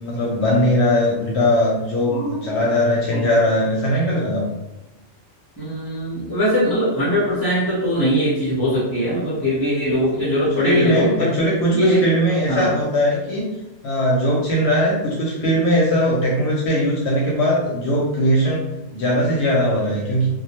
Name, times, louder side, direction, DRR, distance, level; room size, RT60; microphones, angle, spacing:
voice 1, 0.0-4.4 10.4-13.5 13.8-18.6 18.9-20.3, equal, 70° left, -4 dB, 0.8 m, -20 dB
voice 2, 2.1-2.4 3.1-3.2 5.6-11.3 11.7-12.0 12.5-12.7, equal, 20° left, -10 dB, 0.6 m, -21 dB
2.3 x 2.1 x 2.9 m, 0.94 s
omnidirectional pair, 1.3 m